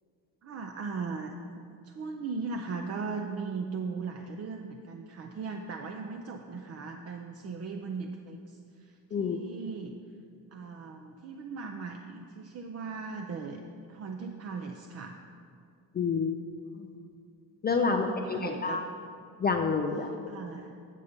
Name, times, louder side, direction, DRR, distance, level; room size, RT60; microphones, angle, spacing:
voice 1, 0.4-1.3 1.8-9.9 10.5-13.6 13.9-15.2 17.8-18.8 20.3-20.7, right 4 dB, 35° right, 3 dB, 0.5 m, -38 dB
voice 2, 15.9-16.3 16.8-16.9 17.6-18.8 19.4-20.1, left 5 dB, 25° left, 3 dB, 0.3 m, -28 dB
8.4 x 6.7 x 5.1 m, 2.4 s
cardioid pair, 115°, 43 cm